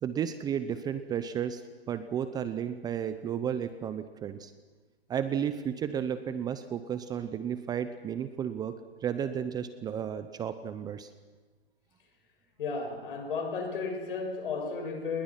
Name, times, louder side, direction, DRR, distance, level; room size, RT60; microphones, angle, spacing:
voice 1, 0.0-1.6 1.9-4.5 5.1-8.7 9.0-11.1, right 8 dB, 15° right, 11 dB, 0.7 m, -33 dB
voice 2, 12.6-15.2, left 4 dB, 60° left, 4 dB, 6.8 m, -33 dB
29.0 x 20.5 x 6.0 m, 1.3 s
hypercardioid pair, 135°, 30 cm